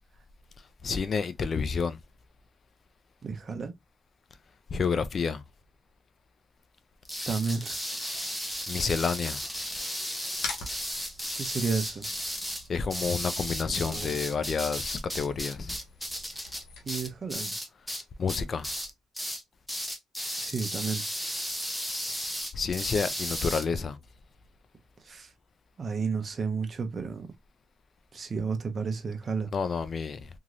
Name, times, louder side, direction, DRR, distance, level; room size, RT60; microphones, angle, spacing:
voice 1, 0.8-2.0 4.7-5.4 8.7-9.4 12.7-15.8 18.2-18.7 22.5-24.0 29.5-30.3, left 5 dB, 45° left, 0.5 m, -29 dB
voice 2, 3.2-3.7 7.3-7.8 11.4-12.1 13.7-14.2 16.8-17.6 20.4-21.0 25.0-25.3 25.8-27.3 28.1-29.5, right 5 dB, 40° right, 0.8 m, -32 dB
sound 1, 7.0-18.0 18.3-18.9 19.1-19.4 19.7-23.6, equal, 5° left, 0.7 m, -35 dB
sound 2, 10.4-17.4, left 4 dB, 85° left, 1.0 m, -45 dB
3.0 x 2.7 x 2.5 m
cardioid pair, 90°, 0 cm